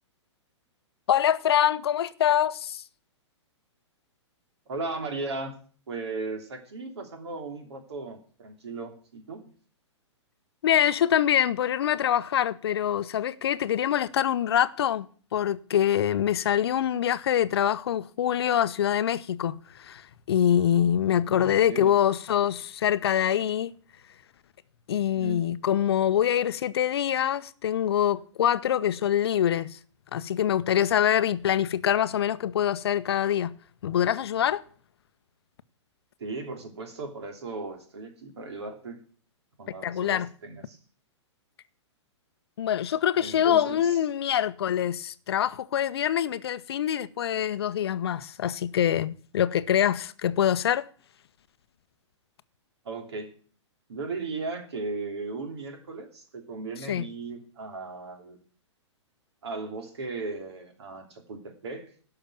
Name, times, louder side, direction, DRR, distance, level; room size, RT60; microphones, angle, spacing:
voice 1, 1.1-2.8 10.6-15.1 15.3-23.7 24.9-29.8 30.1-34.6 39.8-40.3 42.6-50.9 56.9-57.0, left 10 dB, 55° left, 0.7 m, -25 dB
voice 2, 4.7-5.5 5.9-9.5 21.3-21.9 25.1-25.4 36.2-39.0 39.6-40.8 43.2-44.0 52.8-53.3 53.9-58.4 59.4-61.9, right 3 dB, 60° right, 3.0 m, -36 dB
12.0 x 5.8 x 9.0 m
figure-of-eight pair, 115°, 15 cm